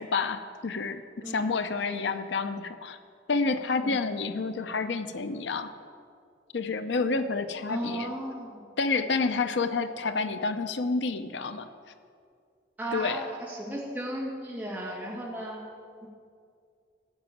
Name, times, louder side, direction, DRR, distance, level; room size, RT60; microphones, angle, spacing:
voice 1, 0.0-3.0 3.3-5.7 6.5-8.1 8.8-11.7 12.9-13.2, left 4 dB, 80° left, 10 dB, 0.6 m, -29 dB
voice 2, 7.7-8.6 12.8-15.6 16.0-16.1, right 1 dB, 10° right, -5 dB, 2.4 m, -35 dB
14.5 x 6.0 x 9.1 m, 2.3 s
head